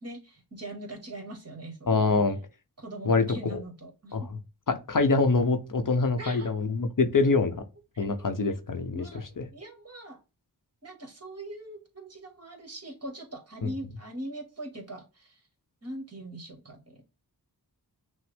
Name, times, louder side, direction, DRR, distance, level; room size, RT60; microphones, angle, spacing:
voice 1, 0.0-2.1 2.8-4.3 6.2-6.5 7.9-8.3 8.9-10.2 10.8-15.4 15.8-17.0, right 1 dB, 40° right, 1.5 m, -41 dB
voice 2, 1.9-2.4 3.1-3.6 4.1-4.3 4.7-7.5 8.0-9.0 9.4-9.5 13.6-13.7, left 3 dB, 50° left, 0.8 m, -25 dB
6.0 x 2.0 x 3.3 m
wide cardioid pair, 55°, 40 cm